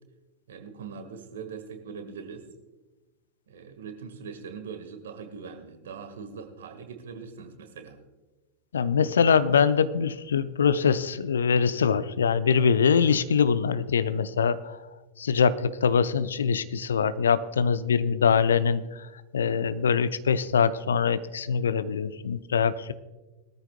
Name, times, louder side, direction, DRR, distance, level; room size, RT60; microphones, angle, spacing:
voice 1, 0.5-2.5 3.5-8.0, right 6 dB, 60° right, 7 dB, 1.6 m, -41 dB
voice 2, 8.7-14.8 15.2-22.9, left 6 dB, 65° left, 14 dB, 0.6 m, -23 dB
20.5 x 13.5 x 2.3 m, 1.1 s
figure-of-eight pair, 90°, 0 cm